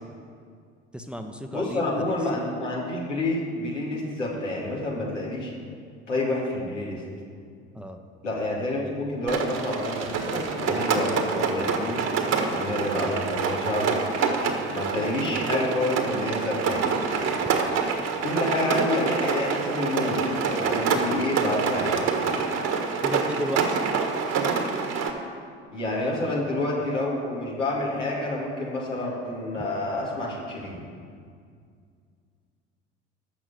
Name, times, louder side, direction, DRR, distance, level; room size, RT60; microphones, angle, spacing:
voice 1, 0.9-2.3 7.7-8.0 17.8-17.9 23.0-23.8 25.9-26.1 29.6-29.7, equal, 5° right, 5 dB, 0.9 m, -34 dB
voice 2, 1.5-5.5 6.1-7.0 8.2-12.0 12.5-13.9 14.7-16.9 18.2-22.0 25.7-30.8, left 2 dB, 85° left, -5 dB, 2.6 m, -28 dB
Rain, 9.3-25.1, right 5 dB, 45° right, 1.6 m, -26 dB
13.5 x 6.1 x 6.9 m, 2.2 s
figure-of-eight pair, 60°, 35 cm